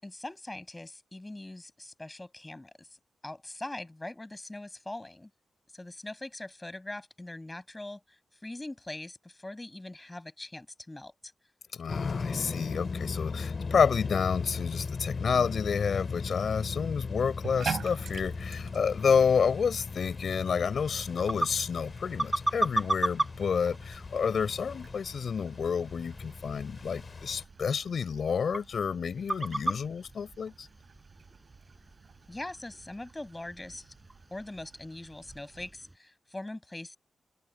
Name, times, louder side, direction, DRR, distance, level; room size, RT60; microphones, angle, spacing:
voice 1, 0.0-5.3 5.7-11.3 32.3-33.9 34.3-37.0, left 2 dB, 15° left, 6.7 m, -42 dB
voice 2, 11.7-30.7, left 6 dB, 70° left, 3.9 m, -29 dB
sound 1, 11.9-27.4, left 4 dB, 45° left, 2.9 m, -38 dB
Bathtub (filling or washing), 17.3-35.7, right 6 dB, 70° right, 4.4 m, -46 dB
sound 2, 21.0-36.0, right 1 dB, 15° right, 7.8 m, -37 dB
wide cardioid pair, 110°, 0 cm